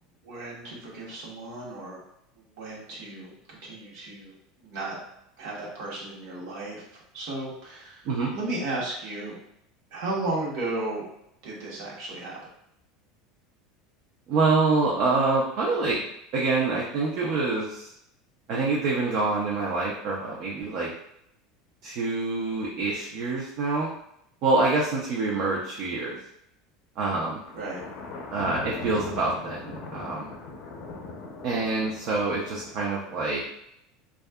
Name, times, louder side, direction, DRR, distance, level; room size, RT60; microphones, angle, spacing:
voice 1, 0.2-2.0 2.4-5.0 5.4-8.1 8.3-9.4 9.9-11.0 11.4-12.4 27.5-27.8, right 2 dB, 65° right, -4 dB, 0.9 m, -34 dB
voice 2, 14.3-16.0 16.3-17.9 18.5-20.9 21.8-23.9 24.4-26.2 27.0-27.4 28.3-30.3 31.4-33.4, right 3 dB, 50° right, -4 dB, 0.5 m, -26 dB
Thunder, 27.5-32.7, left 3 dB, 50° left, 0.5 m, -40 dB
2.6 x 2.3 x 2.2 m, 0.76 s
supercardioid pair, 160°, 0 cm